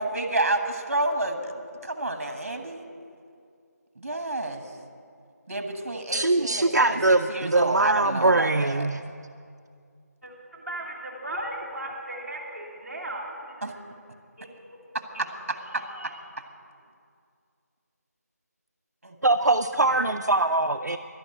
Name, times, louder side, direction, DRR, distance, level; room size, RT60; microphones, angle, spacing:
voice 1, 0.0-1.5 1.8-2.8 4.0-4.6 5.5-8.9 13.6-13.7 15.1-15.8 19.0-19.5 19.9-20.0, right 2 dB, 45° right, 7 dB, 1.5 m, -30 dB
voice 2, 6.1-9.0 19.2-21.0, right 2 dB, 75° right, 5 dB, 0.6 m, -22 dB
voice 3, 10.2-13.8 14.4-15.0 15.5-16.2, right 1 dB, 5° right, -12 dB, 2.3 m, -37 dB
12.0 x 11.5 x 8.9 m, 2.3 s
figure-of-eight pair, 170°, 9 cm